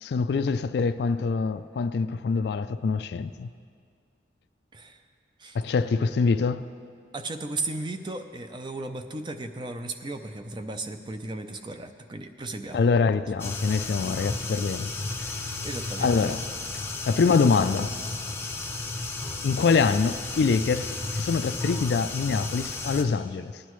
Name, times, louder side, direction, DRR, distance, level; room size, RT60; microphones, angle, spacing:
voice 1, 0.0-3.5 5.5-6.7 12.7-14.9 15.2-15.3 16.0-16.5 16.7-17.9 19.4-23.6, left 4 dB, 60° left, 0.3 m, -25 dB
voice 2, 7.1-12.8 15.6-16.1, right 2 dB, 25° right, 0.5 m, -35 dB
sound 1, 13.4-23.0, left 3 dB, 15° left, 0.6 m, -33 dB
18.0 x 10.0 x 3.1 m
head